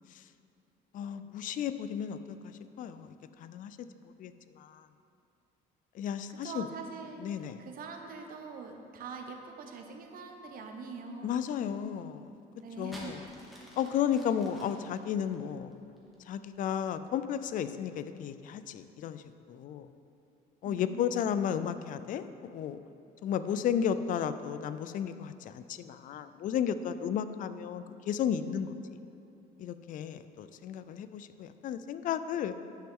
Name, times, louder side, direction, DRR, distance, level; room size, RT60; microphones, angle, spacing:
voice 1, 0.9-3.8 4.2-4.9 5.9-6.7 7.2-7.6 11.2-12.3 12.8-13.3 13.8-15.7 16.3-19.9 20.6-22.3 22.5-22.8 23.2-28.7 29.6-32.5, left 8 dB, 50° left, 12 dB, 0.4 m, -33 dB
voice 2, 6.3-11.3 12.6-13.2 13.6-13.7 20.6-21.4, right 4 dB, 60° right, 3 dB, 0.9 m, -44 dB
sound 1, 12.6-16.3 17.1-17.5, equal, ahead, 1.5 m, -50 dB
9.8 x 6.1 x 3.7 m, 2.7 s
cardioid pair, 110°, 17 cm